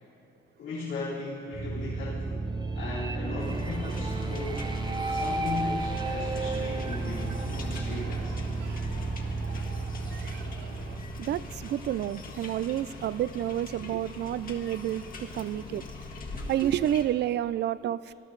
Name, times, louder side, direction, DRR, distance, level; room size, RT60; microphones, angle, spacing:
voice 1, 0.6-2.5 2.8-4.7 5.0-8.4, left 3 dB, 75° left, -9 dB, 3.8 m, -37 dB
sound 1, 1.5-12.4, right 3 dB, 20° right, 0.7 m, -33 dB
sound 2, 3.2-11.0, right 7 dB, 80° right, 0.8 m, -48 dB
sound 3, 3.4-17.0, left 3 dB, 45° left, 1.7 m, -42 dB
voice 2, 10.1-10.7 11.2-15.9 16.5-18.1, right 12 dB, 60° right, 18 dB, 0.4 m, -30 dB
19.0 x 11.5 x 3.9 m, 2.9 s
cardioid pair, 90°, 20 cm